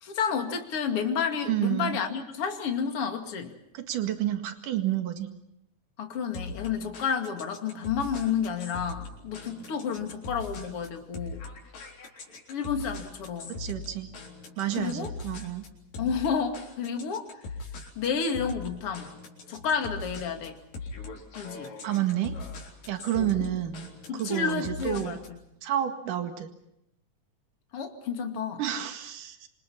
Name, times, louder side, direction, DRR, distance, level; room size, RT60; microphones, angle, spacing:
voice 1, 0.0-3.6 6.0-11.4 12.5-13.6 14.7-15.1 16.0-17.4 18.0-19.1 19.5-20.6 21.3-21.7 23.2-23.5 24.1-25.4 27.7-28.6, left 6 dB, 45° left, 4 dB, 3.0 m, -31 dB
voice 2, 1.5-2.0 3.7-5.3 13.6-14.1 14.6-15.7 21.8-22.4 22.9-23.9 24.1-25.2 25.6-26.5 28.6-29.5, right 12 dB, 70° right, 6 dB, 3.5 m, -30 dB
sound 1, 6.3-25.4, left 3 dB, 75° left, 5.5 m, -41 dB
27.0 x 26.5 x 5.8 m, 0.80 s
omnidirectional pair, 3.9 m